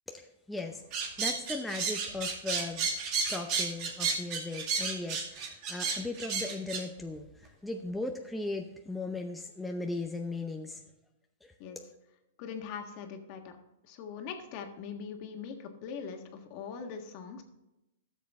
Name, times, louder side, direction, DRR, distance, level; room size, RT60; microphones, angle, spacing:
voice 1, 0.1-0.8 1.2-2.9 3.3-10.8 11.4-11.5, left 2 dB, 5° left, 2 dB, 0.7 m, -37 dB
sound 1, 0.9-6.8, right 5 dB, 40° right, 2.3 m, -32 dB
voice 2, 12.4-13.5 13.8-17.4, left 6 dB, 45° left, 4 dB, 1.5 m, -41 dB
13.0 x 7.3 x 3.6 m, 0.92 s
hypercardioid pair, 135°, 0 cm